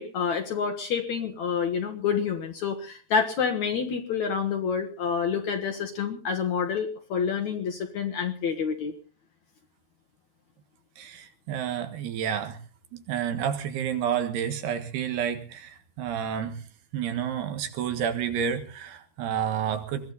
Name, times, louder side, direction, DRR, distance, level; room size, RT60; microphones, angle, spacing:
voice 1, 0.0-8.9, left 6 dB, 60° left, 6 dB, 2.1 m, -28 dB
voice 2, 11.0-12.6 12.9-16.7 16.9-20.1, right 8 dB, 80° right, 7 dB, 3.7 m, -30 dB
22.0 x 15.0 x 4.1 m, 0.39 s
omnidirectional pair, 4.6 m